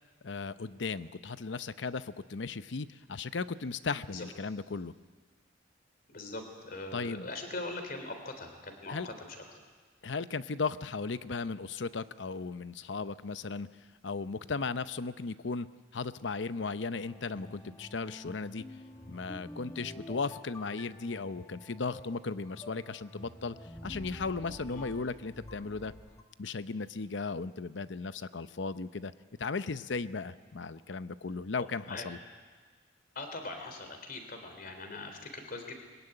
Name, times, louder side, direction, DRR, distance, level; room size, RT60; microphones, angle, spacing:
voice 1, 0.2-4.9 6.9-7.3 8.9-9.1 10.0-13.7 14.0-15.7 15.9-18.6 19.1-23.6 23.8-25.9 26.4-29.1 29.4-32.2, left 4 dB, 75° left, 14 dB, 0.7 m, -36 dB
voice 2, 6.1-9.4 24.7-24.9 31.6-32.1 33.2-35.7, left 2 dB, 50° left, 5 dB, 3.4 m, -41 dB
sound 1, 17.0-26.2, left 1 dB, 20° left, 1.3 m, -48 dB
21.5 x 17.5 x 10.0 m, 1.5 s
head